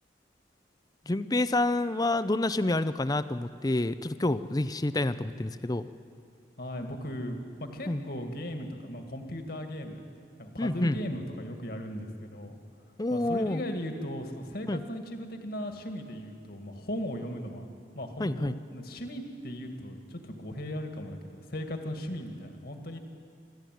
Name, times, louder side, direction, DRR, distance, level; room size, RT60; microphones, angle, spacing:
voice 1, 1.1-5.9 7.9-8.0 10.6-11.0 13.0-13.6 14.7-14.8 18.2-18.5, left 2 dB, 20° left, 13 dB, 0.6 m, -28 dB
voice 2, 6.6-10.1 10.4-12.6 13.1-17.7 17.9-23.0, equal, 55° left, 5 dB, 2.1 m, -37 dB
26.0 x 13.5 x 9.3 m, 2.3 s
head